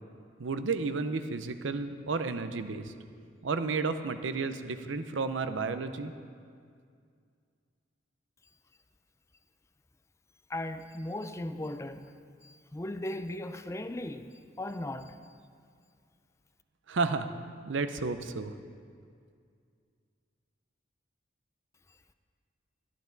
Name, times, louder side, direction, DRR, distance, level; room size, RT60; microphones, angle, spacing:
voice 1, 0.4-2.9 3.4-6.1 16.9-17.3 17.7-18.5, right 4 dB, 75° right, 0.7 m, -32 dB
voice 2, 10.5-12.1 12.4-14.3 14.6-15.2, left 1 dB, 15° left, 0.4 m, -37 dB
13.5 x 12.0 x 4.0 m
head